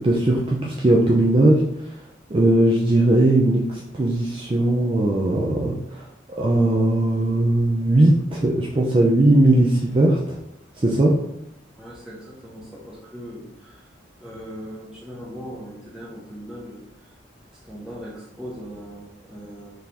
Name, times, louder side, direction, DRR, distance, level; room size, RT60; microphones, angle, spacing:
voice 1, 0.0-2.0 2.3-6.0 6.4-10.4 10.8-11.1, right 1 dB, 25° right, -3 dB, 0.4 m, -19 dB
voice 2, 11.8-13.8 14.2-16.8 17.6-19.7, equal, 5° right, -7 dB, 0.8 m, -39 dB
4.1 x 3.3 x 2.8 m, 0.81 s
head